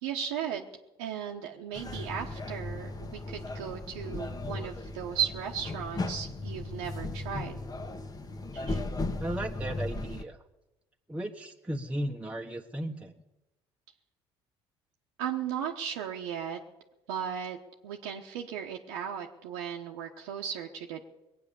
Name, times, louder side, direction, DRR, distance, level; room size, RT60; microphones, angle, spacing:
voice 1, 0.0-0.7 1.0-7.6 8.5-8.8 15.2-16.6 17.1-17.6 17.8-21.0, right 8 dB, 85° right, -1 dB, 1.1 m, -36 dB
sound 1, 1.7-10.2, left 2 dB, 30° left, 1.4 m, -36 dB
voice 2, 9.2-10.4 11.1-13.1, right 1 dB, 10° right, 0 dB, 1.2 m, -35 dB
20.5 x 8.7 x 6.9 m, 1.0 s
hypercardioid pair, 65°, 12 cm